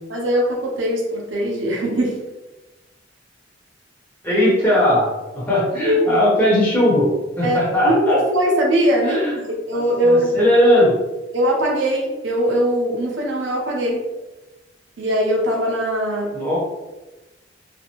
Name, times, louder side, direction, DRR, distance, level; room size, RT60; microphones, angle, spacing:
voice 1, 0.1-2.2 5.8-6.1 7.4-10.4 11.3-14.0 15.0-16.3, equal, 75° right, -1 dB, 0.7 m, -20 dB
voice 2, 4.2-5.1 5.3-7.1 7.4-8.2 9.0-9.4 9.7-11.0 16.3-16.6, left 1 dB, 10° left, -7 dB, 1.0 m, -18 dB
3.1 x 2.0 x 2.9 m, 1.1 s
head